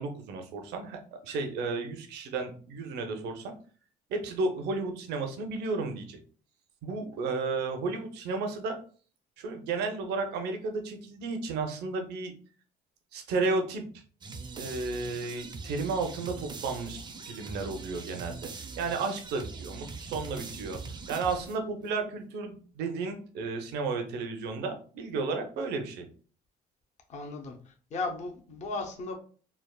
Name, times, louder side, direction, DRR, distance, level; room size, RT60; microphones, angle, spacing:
voice 1, 0.0-3.5 4.1-6.2 6.8-8.8 9.4-12.3 13.1-13.8 14.6-17.0 17.3-20.8 21.1-26.1, right 3 dB, 80° right, 5 dB, 0.6 m, -33 dB
sound 1, 14.2-21.9, right 4 dB, 25° right, 0.4 m, -42 dB
voice 2, 27.1-29.1, left 3 dB, 45° left, 2 dB, 0.6 m, -36 dB
3.3 x 2.0 x 2.2 m, 0.41 s
cardioid pair, 110°, 17 cm